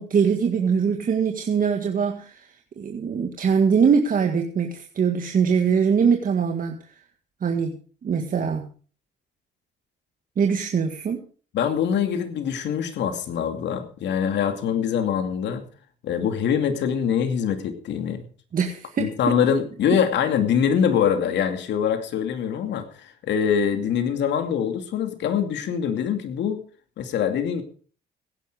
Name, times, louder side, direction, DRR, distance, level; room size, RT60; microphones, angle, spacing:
voice 1, 0.0-2.5 2.8-6.7 7.4-7.8 8.0-8.7 10.4-11.2 18.5-19.1, right 6 dB, 45° right, 4 dB, 1.9 m, -22 dB
voice 2, 11.5-15.6 16.0-18.2 19.0-26.6 27.0-27.6, left 8 dB, 70° left, 7 dB, 2.6 m, -24 dB
16.5 x 10.5 x 4.9 m, 0.42 s
supercardioid pair, 75°, 19 cm